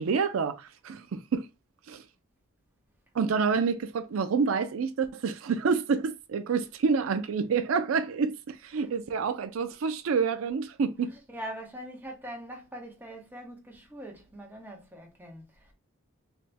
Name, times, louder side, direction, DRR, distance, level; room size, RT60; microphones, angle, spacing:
voice 1, 0.0-1.5 1.9-2.0 3.1-11.1, right 5 dB, 75° right, 0.4 m, -28 dB
voice 2, 11.3-15.7, right 1 dB, 10° right, 0.8 m, -42 dB
3.3 x 2.1 x 4.1 m
head